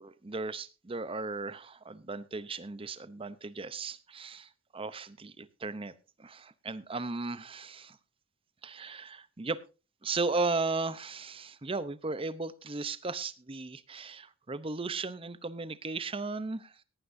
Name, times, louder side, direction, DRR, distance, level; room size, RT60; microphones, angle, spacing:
voice 1, 0.0-5.9 6.2-8.0 8.6-9.6 10.0-16.8, right 3 dB, 25° right, 14 dB, 0.7 m, -36 dB
17.5 x 12.0 x 2.6 m, 0.31 s
head